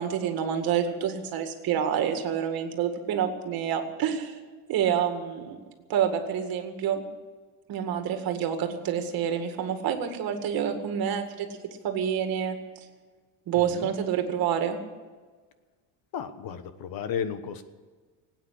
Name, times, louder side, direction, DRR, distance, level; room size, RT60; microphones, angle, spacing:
voice 1, 0.0-4.4 4.7-5.6 5.9-7.0 7.7-11.5 11.8-12.6 13.5-14.8, right 8 dB, 50° right, 6 dB, 2.1 m, -28 dB
voice 2, 13.5-13.9 16.1-17.6, left 8 dB, 50° left, 11 dB, 1.3 m, -34 dB
18.5 x 9.1 x 8.5 m, 1.4 s
cardioid pair, 150°, 44 cm